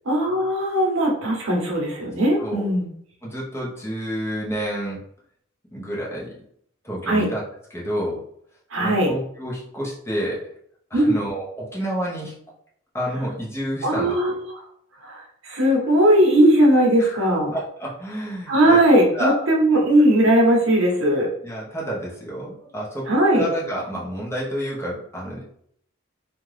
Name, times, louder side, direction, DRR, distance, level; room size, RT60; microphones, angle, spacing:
voice 1, 0.1-2.9 7.1-7.3 8.7-9.1 10.9-11.1 13.8-14.4 15.0-17.5 18.5-21.3 23.1-23.4, right 1 dB, 65° right, -1 dB, 0.8 m, -18 dB
voice 2, 3.2-5.0 5.7-6.3 6.8-7.4 7.7-8.2 8.8-10.5 10.9-12.3 12.9-14.1 17.0-17.2 17.5-18.8 19.1-19.5 21.4-25.4, equal, 10° left, -5 dB, 0.7 m, -29 dB
2.7 x 2.3 x 3.2 m, 0.67 s
head